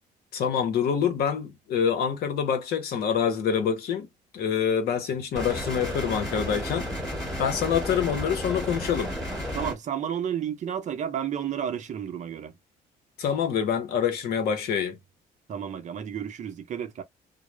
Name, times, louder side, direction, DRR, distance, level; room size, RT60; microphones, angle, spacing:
voice 1, 0.3-4.1 4.3-6.9 7.4-9.1 13.2-15.0, left 7 dB, 65° left, 0.8 m, -26 dB
sound 1, 5.4-9.8, equal, ahead, 1.4 m, -32 dB
voice 2, 9.5-12.5 15.5-17.0, right 9 dB, 45° right, 0.6 m, -31 dB
2.3 x 2.0 x 3.1 m
cardioid pair, 110°, 17 cm